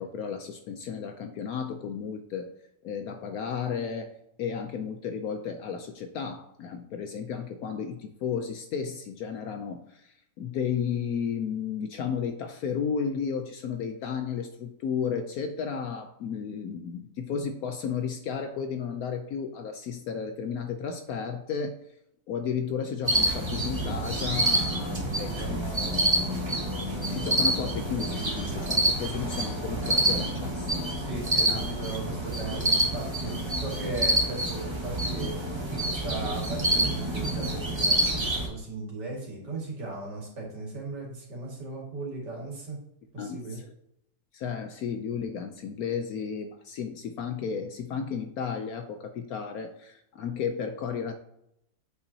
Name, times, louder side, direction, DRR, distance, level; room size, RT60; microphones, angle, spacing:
voice 1, 0.0-2.5 2.8-21.8 22.3-31.1 31.5-31.7 43.2-43.7 44.3-51.1, left 6 dB, 70° left, 7 dB, 0.9 m, -33 dB
sound 1, 23.1-38.5, right 1 dB, 20° right, 1.0 m, -27 dB
voice 2, 31.0-35.4 35.8-42.8 43.1-43.6, right 3 dB, 70° right, -2 dB, 2.7 m, -37 dB
8.1 x 5.7 x 2.7 m, 0.78 s
omnidirectional pair, 1.9 m